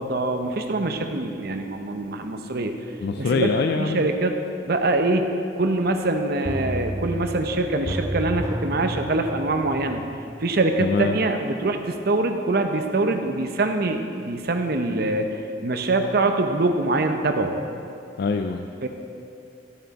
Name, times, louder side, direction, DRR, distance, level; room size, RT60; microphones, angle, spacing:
voice 1, 0.0-2.7 3.2-4.3 4.7-10.0 10.4-17.5 18.8-18.9, right 2 dB, 60° right, 6 dB, 0.7 m, -24 dB
voice 2, 3.0-4.1 10.8-11.2 18.2-18.6, left 4 dB, 60° left, 6 dB, 0.4 m, -24 dB
sound 1, 6.4-11.1 11.5-11.6, right 1 dB, 15° right, 0.5 m, -32 dB
12.0 x 7.8 x 4.1 m, 2.6 s
head